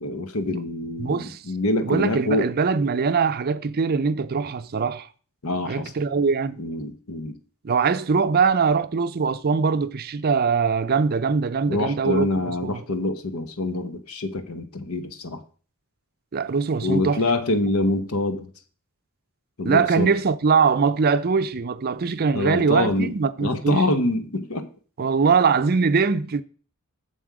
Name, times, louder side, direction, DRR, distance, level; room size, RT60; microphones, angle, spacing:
voice 1, 0.0-2.5 5.4-5.9 6.6-7.4 11.7-15.4 16.8-18.5 19.6-20.1 22.3-23.1 23.4-24.7, left 2 dB, 75° left, 1.0 m, -25 dB
voice 2, 1.0-1.4 1.8-5.1 5.7-6.6 7.6-12.8 16.3-17.2 19.6-23.8 25.0-26.4, right 5 dB, 45° right, 0.5 m, -22 dB
7.4 x 7.0 x 4.8 m
head